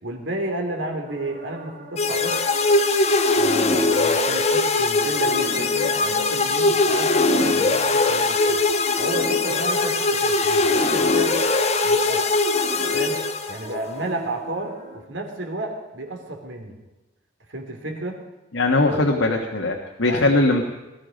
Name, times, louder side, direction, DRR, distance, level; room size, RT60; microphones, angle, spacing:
voice 1, 0.0-2.4 3.4-8.6 9.0-11.4 11.8-12.3 12.9-16.8 17.5-18.2 20.1-20.5, right 1 dB, 75° right, 3 dB, 3.0 m, -32 dB
sound 1, 1.0-15.0, right 1 dB, 40° right, 2.6 m, -39 dB
sound 2, 2.0-13.8, left 3 dB, 35° left, 1.1 m, -21 dB
voice 2, 18.5-20.7, left 2 dB, 85° left, 1 dB, 1.5 m, -20 dB
20.0 x 13.0 x 5.3 m, 1.1 s
head